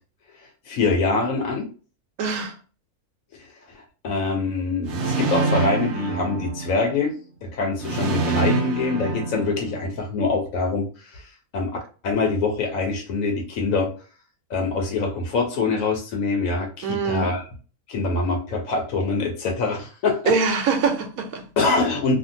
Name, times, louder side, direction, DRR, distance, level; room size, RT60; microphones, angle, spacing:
voice 1, 0.4-1.7 3.4-7.1 7.4-11.8 12.0-13.9 14.5-17.4 17.9-20.3 21.6-22.2, left 3 dB, 75° left, 1.0 m, -24 dB
voice 2, 2.2-2.6 16.8-17.3 20.3-21.4, right 5 dB, 80° right, 1.1 m, -23 dB
sound 1, 4.9-7.0 7.8-10.0, right 4 dB, 65° right, 0.8 m, -26 dB
2.6 x 2.4 x 2.6 m
omnidirectional pair, 1.5 m